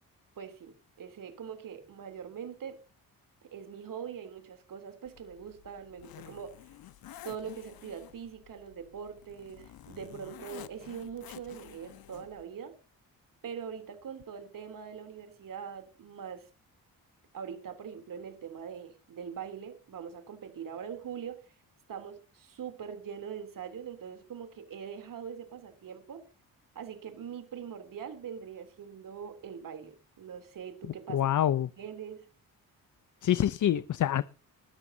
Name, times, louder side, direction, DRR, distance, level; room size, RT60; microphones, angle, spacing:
voice 1, 0.4-2.8 3.4-6.7 7.2-12.7 13.4-16.5 17.3-21.4 21.9-26.2 26.7-31.3 31.8-32.3, right 7 dB, 65° right, 3.4 m, -42 dB
Zipper (clothing), 5.1-12.4, left 12 dB, 90° left, 1.2 m, -51 dB
voice 2, 31.1-31.7 33.2-34.2, left 11 dB, 55° left, 0.7 m, -26 dB
20.5 x 13.5 x 2.8 m
cardioid pair, 110°, 35 cm